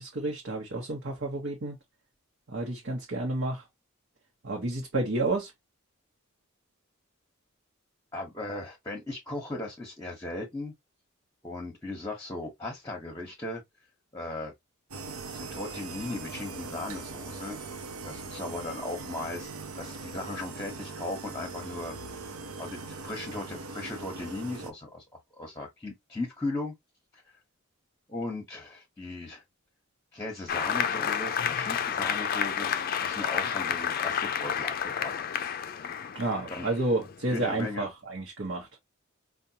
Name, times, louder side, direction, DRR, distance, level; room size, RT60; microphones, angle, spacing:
voice 1, 0.0-1.8 2.5-3.6 4.4-5.5 36.1-38.7, right 2 dB, 60° right, 1.0 m, -30 dB
voice 2, 8.1-10.7 11.4-13.6 14.1-14.5 15.3-17.6 18.0-19.5 19.7-22.0 22.6-25.0 25.4-26.7 28.1-29.4 30.1-32.7 33.0-35.1 36.5-36.7 37.3-37.9, left 2 dB, 15° left, 1.0 m, -37 dB
sound 1, 14.9-24.7, right 3 dB, 85° right, 0.8 m, -40 dB
Applause, 30.5-37.7, left 8 dB, 45° left, 0.4 m, -30 dB
5.0 x 2.3 x 2.8 m
head